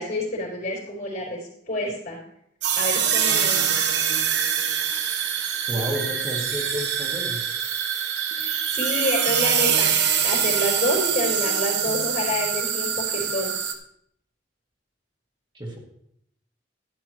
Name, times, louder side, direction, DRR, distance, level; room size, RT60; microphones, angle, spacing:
voice 1, 0.0-2.2 2.8-3.7 8.4-9.9 10.2-13.5, left 1 dB, 45° left, -5 dB, 4.1 m, -28 dB
sound 1, 2.6-13.7, right 8 dB, 70° right, 1.1 m, -24 dB
voice 2, 5.7-7.6 15.5-15.8, equal, 25° right, 0 dB, 2.0 m, -31 dB
12.0 x 11.0 x 3.2 m, 0.72 s
head